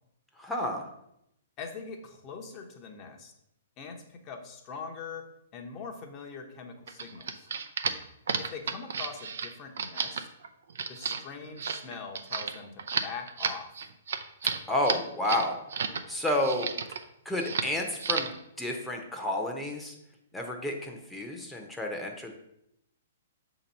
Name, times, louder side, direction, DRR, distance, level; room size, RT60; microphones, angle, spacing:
voice 1, 0.4-0.9 14.7-15.6 16.1-17.0 17.2-19.9 20.3-22.3, left 1 dB, 5° left, 1 dB, 0.9 m, -31 dB
voice 2, 1.6-3.3 3.8-7.5 8.4-10.3 10.9-13.7, left 5 dB, 30° left, 3 dB, 0.9 m, -42 dB
sound 1, 6.9-16.0 16.3-17.0 17.4-17.7 18.0-18.4, right 6 dB, 70° right, 0.5 m, -32 dB
6.6 x 3.0 x 5.3 m, 0.80 s
hypercardioid pair, 130°, 0 cm